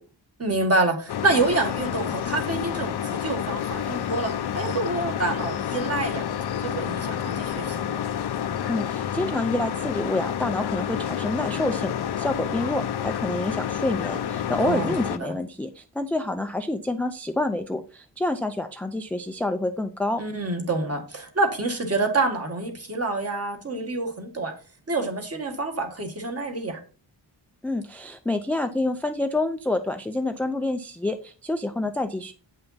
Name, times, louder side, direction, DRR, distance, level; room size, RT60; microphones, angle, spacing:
voice 1, 0.4-6.2 6.6-8.0 14.6-14.9 15.2-15.3 20.2-24.5 24.9-26.8, right 3 dB, 35° right, 3 dB, 1.5 m, -27 dB
sound 1, 1.1-15.2, left 9 dB, 70° left, 0.6 m, -29 dB
voice 2, 8.7-20.2 27.6-32.3, left 2 dB, 5° left, 8 dB, 0.3 m, -28 dB
8.2 x 5.5 x 4.0 m, 0.38 s
wide cardioid pair, 165°, 41 cm